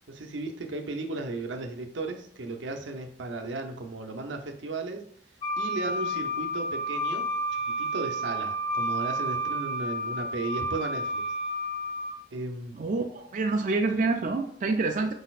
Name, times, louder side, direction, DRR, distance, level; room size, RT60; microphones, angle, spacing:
voice 1, 0.1-5.0 5.6-7.3 7.7-11.2 12.3-12.8 15.0-15.1, right 3 dB, 80° right, 4 dB, 0.7 m, -35 dB
Wind instrument woodwind instrument, 5.4-12.2, right 1 dB, 25° left, 1.3 m, -31 dB
voice 2, 12.7-15.1, right 3 dB, 45° right, 3 dB, 0.4 m, -27 dB
5.0 x 4.1 x 2.4 m, 0.65 s
head